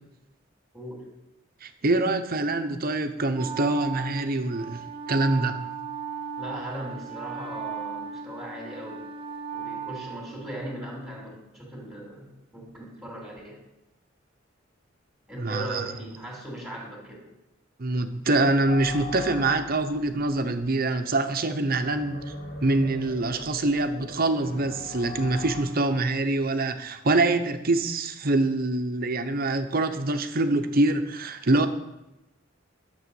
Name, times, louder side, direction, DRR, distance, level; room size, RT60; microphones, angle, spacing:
voice 1, 1.6-5.7 15.4-15.9 17.8-22.3 22.6-31.7, right 2 dB, 50° right, 8 dB, 0.9 m, -25 dB
Wind instrument woodwind instrument, 3.3-10.9, right 7 dB, 30° right, 1.2 m, -37 dB
voice 2, 6.4-9.0 9.5-13.6 15.3-17.3, equal, 5° right, -4 dB, 2.8 m, -38 dB
sound 1, 18.7-25.6, left 2 dB, 55° left, 2.8 m, -41 dB
11.5 x 7.0 x 7.0 m, 0.96 s
head